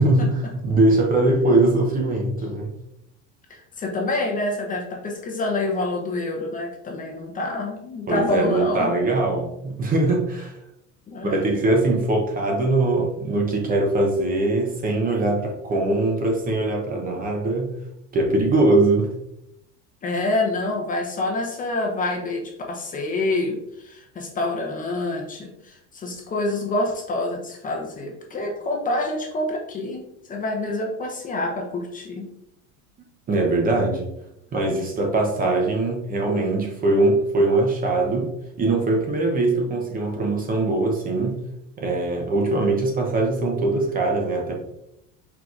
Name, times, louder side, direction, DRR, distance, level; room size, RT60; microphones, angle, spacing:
voice 1, 0.0-2.7 8.1-10.5 11.2-17.7 18.1-19.1 33.3-34.1 34.5-38.3 38.6-41.4 41.8-44.5, right 2 dB, 25° right, 1 dB, 0.7 m, -21 dB
voice 2, 3.5-8.9 11.1-11.4 20.0-30.0 30.3-32.3, left 2 dB, 25° left, 0 dB, 0.7 m, -27 dB
4.6 x 3.8 x 2.4 m, 0.81 s
supercardioid pair, 140°, 36 cm